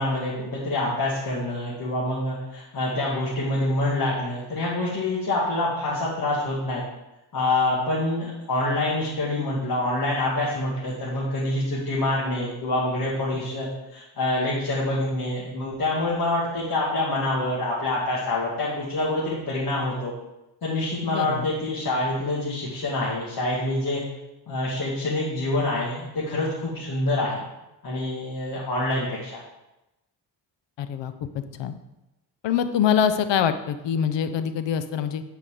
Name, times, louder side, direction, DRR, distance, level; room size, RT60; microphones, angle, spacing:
voice 1, 0.0-6.8 7.3-20.1 20.6-24.0 24.5-27.4 27.8-29.4, left 2 dB, 50° left, -7 dB, 2.4 m, -26 dB
voice 2, 21.1-21.5 30.8-31.7 32.4-35.2, left 8 dB, 75° left, 10 dB, 0.8 m, -25 dB
10.0 x 5.1 x 4.9 m, 0.94 s
cardioid pair, 100°, 44 cm